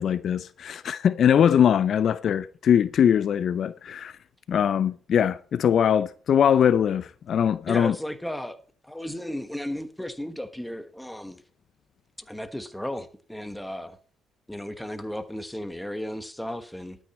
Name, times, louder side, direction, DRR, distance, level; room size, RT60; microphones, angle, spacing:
voice 1, 0.0-4.1 4.5-7.9, left 8 dB, 55° left, 0.5 m, -21 dB
voice 2, 7.7-11.4 12.2-14.0 14.5-17.0, left 1 dB, 5° left, 1.3 m, -35 dB
12.5 x 9.0 x 4.3 m
cardioid pair, 100°, 0 cm